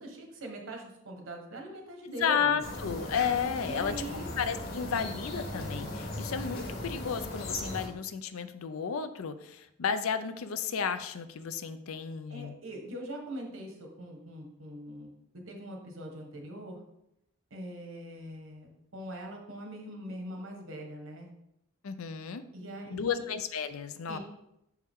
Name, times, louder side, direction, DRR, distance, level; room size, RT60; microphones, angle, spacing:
voice 1, 0.0-2.6 3.6-4.3 12.3-16.8 17.5-21.3 22.5-23.2 24.1-24.2, right 1 dB, 65° right, 2 dB, 1.2 m, -42 dB
voice 2, 2.0-3.9 4.4-12.5 21.8-22.4 22.9-24.2, left 7 dB, 75° left, 11 dB, 0.5 m, -32 dB
sound 1, 2.6-7.9, left 1 dB, 45° left, 1.3 m, -38 dB
6.7 x 4.7 x 3.6 m, 0.82 s
head